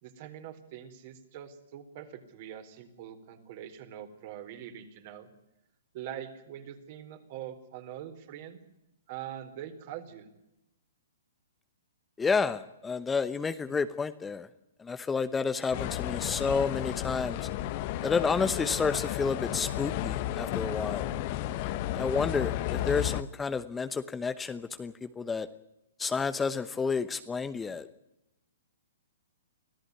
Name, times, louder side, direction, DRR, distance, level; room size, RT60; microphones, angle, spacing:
voice 1, 0.0-5.3 5.9-8.6 9.1-10.3, right 10 dB, 45° right, 7 dB, 4.0 m, -43 dB
voice 2, 12.2-14.5 14.8-17.5 18.0-21.1 21.6-25.5 26.0-27.9, left 5 dB, 10° left, 11 dB, 0.9 m, -30 dB
sound 1, 15.7-23.2, left 13 dB, 45° left, 1.3 m, -33 dB
24.5 x 15.5 x 9.7 m, 0.91 s
hypercardioid pair, 130°, 0 cm